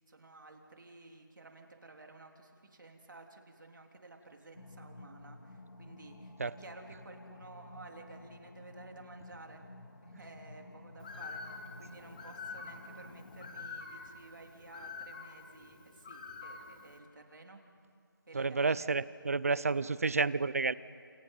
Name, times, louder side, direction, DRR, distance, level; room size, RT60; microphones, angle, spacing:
voice 1, 0.1-6.3 6.6-9.6 10.0-17.6 18.3-18.9 19.5-19.8, right 3 dB, 65° right, 3 dB, 3.6 m, -53 dB
sound 1, 4.5-13.7, left 2 dB, 85° left, 2.8 m, -52 dB
Bird, 11.0-17.0, left 4 dB, 25° left, 1.9 m, -47 dB
voice 2, 18.3-20.7, right 4 dB, 40° right, 18 dB, 0.6 m, -30 dB
29.5 x 28.5 x 5.7 m, 2.2 s
figure-of-eight pair, 175°, 12 cm